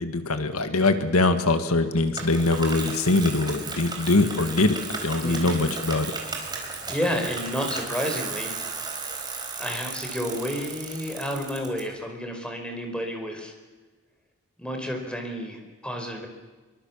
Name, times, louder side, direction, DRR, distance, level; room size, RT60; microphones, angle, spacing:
voice 1, 0.0-6.1, left 2 dB, 80° left, 8 dB, 1.8 m, -23 dB
Bicycle, 2.2-11.8, right 4 dB, 20° right, 4.5 m, -35 dB
voice 2, 5.2-5.6 6.9-8.6 9.6-13.5 14.6-16.3, equal, 5° left, 3 dB, 4.6 m, -30 dB
25.5 x 23.5 x 7.3 m, 1.3 s
head